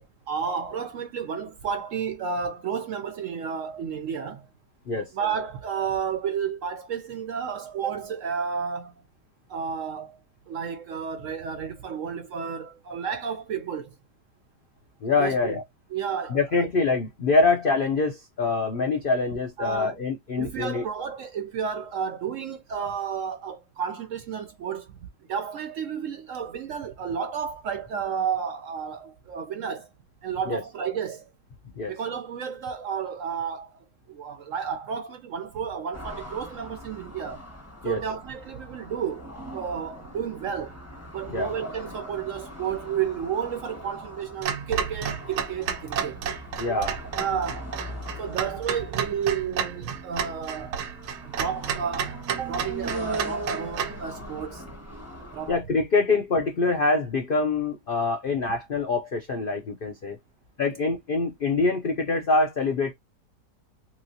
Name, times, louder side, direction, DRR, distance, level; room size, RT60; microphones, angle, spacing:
voice 1, 0.0-4.5 5.1-8.9 9.5-13.9 15.2-15.6 15.9-16.7 19.6-20.0 20.4-25.0 25.3-29.9 30.2-31.3 31.9-37.5 37.8-40.8 41.1-46.2 46.7-47.8 48.2-50.8 51.2-54.6 55.3-55.6, right 7 dB, 70° right, 0.8 m, -32 dB
voice 2, 15.0-15.6 16.3-20.8 30.5-30.6 31.8-31.9 37.8-38.0 41.3-41.5 46.6-46.9 55.5-60.2 60.6-62.9, left 3 dB, 85° left, 0.4 m, -25 dB
sound 1, 35.9-55.6, equal, 10° left, 1.0 m, -41 dB
Clock, 44.4-54.0, right 7 dB, 90° right, 1.3 m, -32 dB
3.0 x 3.0 x 2.6 m
omnidirectional pair, 1.8 m